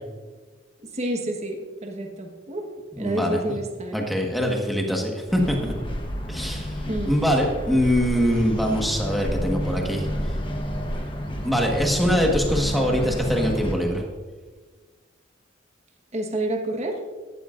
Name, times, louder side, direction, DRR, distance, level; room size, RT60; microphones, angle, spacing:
voice 1, 0.8-2.7 3.0-4.1 6.9-7.1 16.1-17.0, right 1 dB, 35° right, 2 dB, 1.3 m, -29 dB
voice 2, 2.9-3.4 3.9-5.7 6.3-10.3 11.4-14.0, equal, ahead, 0 dB, 1.4 m, -23 dB
sound 1, 5.3-13.7, equal, 25° left, 1.2 m, -30 dB
16.0 x 12.0 x 2.6 m, 1.4 s
head